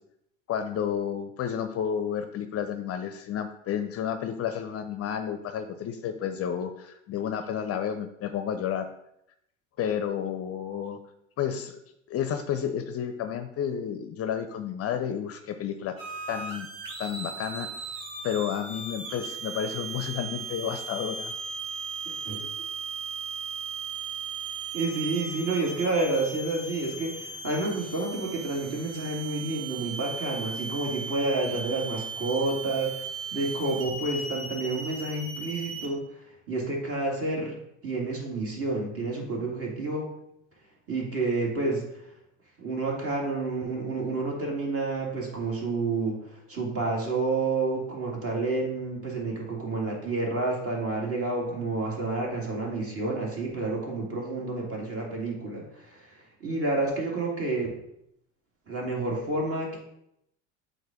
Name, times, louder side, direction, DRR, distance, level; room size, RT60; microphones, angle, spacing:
voice 1, 0.5-8.9 9.8-11.0 11.4-11.8 12.1-15.9 16.3-16.7 17.0-17.7 18.2-21.3, left 8 dB, 40° left, 8 dB, 0.6 m, -31 dB
sound 1, 16.0-35.9, right 4 dB, 60° right, 1.5 m, -37 dB
voice 2, 22.1-22.4 24.7-32.9 33.3-36.0 36.5-37.6 37.8-40.1 40.9-41.8 42.6-46.2 46.5-56.1 56.4-57.7 58.7-59.8, right 2 dB, 35° right, -1 dB, 2.2 m, -29 dB
7.8 x 2.6 x 5.0 m, 0.79 s
hypercardioid pair, 70°, 38 cm